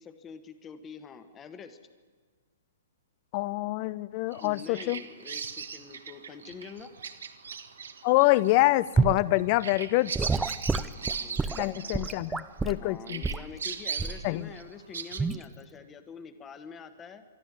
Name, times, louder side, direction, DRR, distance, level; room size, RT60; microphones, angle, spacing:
voice 1, 0.0-1.8 4.3-6.9 10.9-12.4 12.8-17.2, left 6 dB, 20° left, 10 dB, 1.4 m, -46 dB
voice 2, 3.3-5.0 8.0-10.1 11.6-13.2 14.2-14.5, left 19 dB, 35° left, 20 dB, 0.6 m, -26 dB
Bird vocalization bird call bird song, 4.3-12.7 13.1-15.2, right 6 dB, 65° right, 1.5 m, -38 dB
Gurgling / Sink (filling or washing) / Liquid, 9.0-9.2 10.1-12.8 13.2-13.5 14.0-14.3 15.2-15.4, right 4 dB, 10° right, 0.6 m, -28 dB
24.0 x 13.5 x 9.4 m, 1.5 s
figure-of-eight pair, 115°, 0 cm